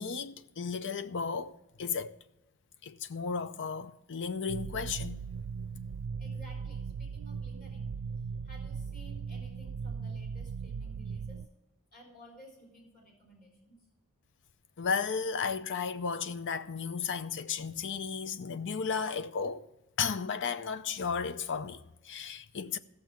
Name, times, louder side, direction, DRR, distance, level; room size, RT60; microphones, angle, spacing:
voice 1, 0.0-2.1 2.8-5.2 14.8-19.7 20.0-22.8, left 5 dB, 55° left, 0.6 m, -34 dB
sound 1, 4.5-11.5, right 5 dB, 90° right, 0.3 m, -38 dB
voice 2, 6.2-7.9 8.4-11.4 11.9-13.8, equal, 40° left, 4.0 m, -55 dB
15.0 x 7.3 x 4.5 m
head